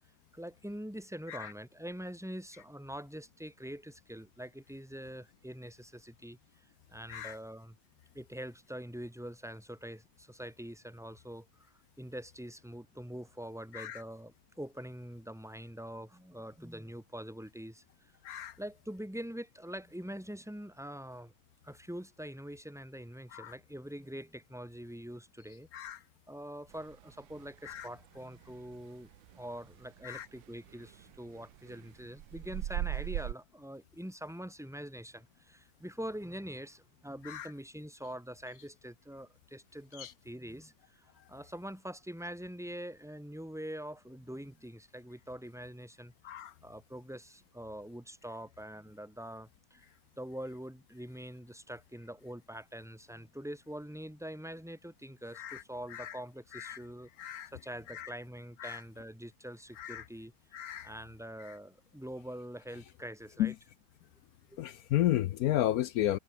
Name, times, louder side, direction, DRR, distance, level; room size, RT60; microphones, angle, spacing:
voice 1, 0.3-7.8 8.1-11.7 12.0-18.1 18.6-21.3 21.6-25.7 26.3-46.1 46.6-49.9 50.2-60.3 60.8-63.5 64.5-64.6 65.7-65.8, equal, ahead, 4.7 m, -44 dB
sound 1, 26.7-28.8 29.0-33.3, right 13 dB, 75° right, 1.5 m, -39 dB
voice 2, 57.2-57.5 57.9-58.1 58.6-58.8 59.8-60.0 60.5-60.9 63.4-63.5 64.6-66.2, left 13 dB, 75° left, 0.8 m, -32 dB
omnidirectional pair, 2.1 m